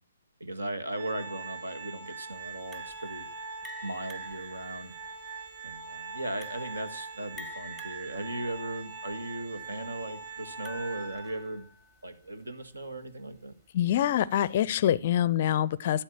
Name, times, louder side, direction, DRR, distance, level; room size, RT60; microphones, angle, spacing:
voice 1, 0.4-3.3 3.8-4.9 5.6-11.6 12.0-13.5, right 2 dB, 70° right, 11 dB, 1.9 m, -37 dB
Organ, 0.9-11.6, right 4 dB, 35° right, 6.8 m, -42 dB
sound 1, 2.7-12.0, left 1 dB, 5° right, 1.0 m, -49 dB
voice 2, 13.7-16.0, left 11 dB, 40° left, 23 dB, 0.5 m, -25 dB
12.5 x 9.2 x 7.3 m, 0.41 s
figure-of-eight pair, 130°, 0 cm